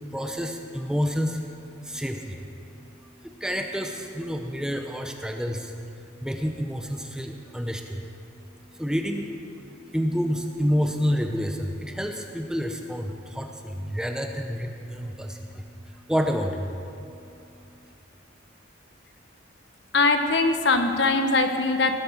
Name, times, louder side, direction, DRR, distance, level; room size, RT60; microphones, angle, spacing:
voice 1, 0.0-17.9, equal, 5° right, 3 dB, 0.7 m, -30 dB
voice 2, 19.9-21.9, left 3 dB, 60° left, 6 dB, 1.2 m, -21 dB
18.5 x 8.5 x 7.2 m, 2.8 s
head